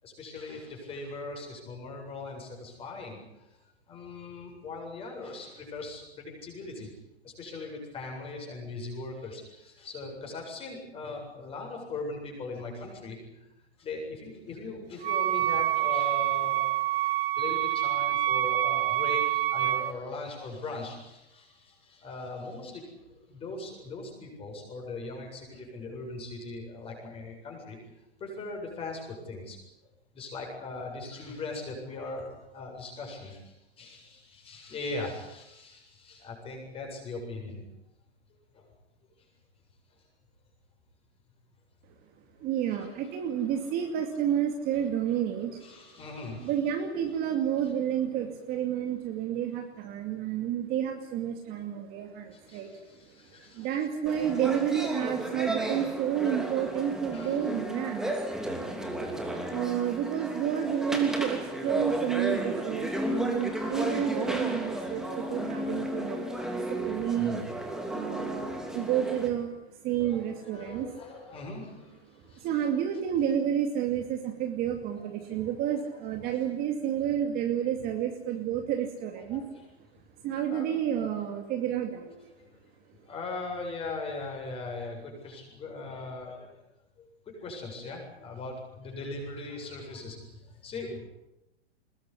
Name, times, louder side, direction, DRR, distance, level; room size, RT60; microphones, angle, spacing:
voice 1, 0.0-3.2 3.5-3.6 3.9-6.9 7.2-13.5 13.8-16.7 17.4-22.9 23.3-27.8 28.2-29.6 30.1-37.6 38.5-38.7 42.7-43.2 45.6-46.5 52.3-53.9 57.1-57.4 58.0-58.1 58.6-58.8 70.0-72.5 72.9-73.0 75.4-75.5 76.3-76.4 79.3-79.6 80.5-80.6 82.3-82.4 83.0-86.6 87.0-91.1, left 3 dB, 15° left, 1 dB, 7.7 m, -40 dB
Wind instrument woodwind instrument, 15.0-20.0, right 14 dB, 60° right, 1.2 m, -27 dB
voice 2, 42.4-45.6 46.4-52.7 53.5-58.1 59.5-67.4 67.9-69.5 69.8-70.9 72.3-79.4 80.2-82.1, right 9 dB, 30° right, 4 dB, 2.5 m, -30 dB
sound 1, 54.1-69.3, right 1 dB, ahead, 2.9 m, -33 dB
22.0 x 21.0 x 9.9 m, 0.93 s
hypercardioid pair, 155°, 32 cm